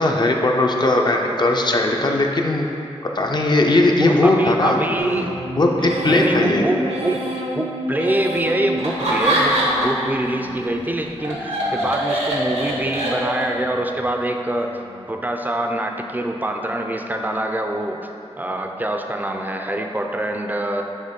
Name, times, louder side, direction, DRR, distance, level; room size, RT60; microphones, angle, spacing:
voice 1, 0.0-2.7 3.1-4.8 5.6-6.7, left 2 dB, 40° left, 1 dB, 0.5 m, -18 dB
voice 2, 4.0-5.4 6.0-7.2 7.5-14.7 15.1-18.1 18.4-20.8, right 1 dB, 15° right, 3 dB, 0.4 m, -24 dB
sound 1, 5.0-10.8 11.2-11.9 12.3-13.0 13.4-14.1 14.5-15.1 15.6-16.1, right 1 dB, 65° right, 0.8 m, -31 dB
Laughter, 8.8-10.1 10.4-13.6, right 1 dB, 85° right, 1.1 m, -22 dB
6.5 x 3.0 x 5.2 m, 2.7 s
wide cardioid pair, 90°, 11 cm